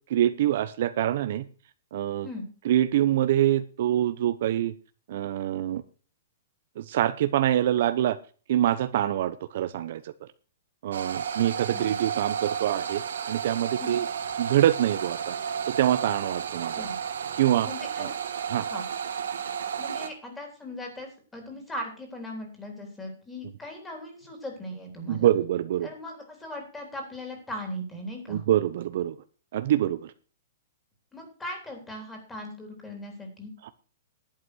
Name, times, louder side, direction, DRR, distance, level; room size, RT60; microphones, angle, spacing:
voice 1, 0.1-1.4 1.9-2.3 2.6-4.7 5.1-5.8 6.8-8.2 8.5-10.3 10.8-13.0 13.3-14.1 14.4-15.4 15.7-16.9 17.4-17.7 18.0-18.1 18.5-18.7 25.1-25.9 28.3-29.2 29.5-30.1, right 12 dB, 55° right, 12 dB, 0.8 m, -25 dB
sound 1, 10.9-20.1, right 7 dB, 90° right, 2.7 m, -32 dB
voice 2, 11.7-12.0 13.8-14.1 16.7-17.1 17.5-18.1 18.6-18.9 19.8-25.3 25.8-28.4 31.1-33.5, left 1 dB, 10° left, 3 dB, 3.6 m, -39 dB
11.5 x 8.4 x 6.2 m, 0.39 s
hypercardioid pair, 165°, 0 cm